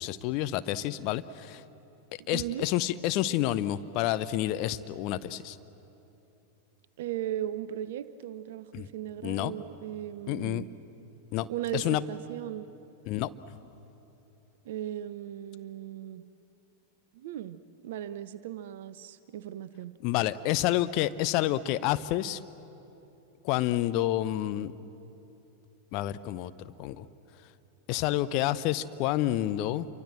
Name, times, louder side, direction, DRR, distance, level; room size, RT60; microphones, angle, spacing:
voice 1, 0.0-1.6 2.3-5.6 8.7-8.9 9.2-9.5 10.3-10.6 11.3-11.5 11.7-12.0 13.1-13.3 20.0-22.4 23.4-24.7 25.9-27.0 27.9-29.9, left 14 dB, 40° left, 13 dB, 0.8 m, -29 dB
voice 2, 2.3-2.7 7.0-10.7 11.5-12.7 14.6-16.2 17.1-17.6 17.8-19.9, right 12 dB, 55° right, 15 dB, 0.6 m, -37 dB
27.5 x 24.0 x 7.6 m, 3.0 s
figure-of-eight pair, 90°, 0 cm